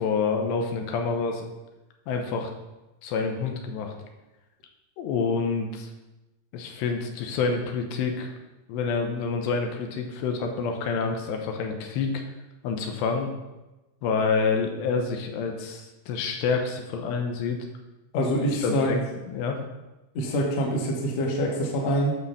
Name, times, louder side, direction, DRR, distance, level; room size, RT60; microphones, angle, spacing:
voice 1, 0.0-1.5 2.1-2.5 3.0-3.9 5.0-5.9 6.5-8.3 8.7-12.2 12.6-13.3 14.0-17.6 18.1-18.3 18.6-19.6, left 5 dB, 85° left, 3 dB, 3.1 m, -28 dB
voice 2, 18.1-18.9 20.1-22.2, equal, 50° left, -1 dB, 2.1 m, -25 dB
11.5 x 4.3 x 6.8 m, 1.0 s
omnidirectional pair, 5.0 m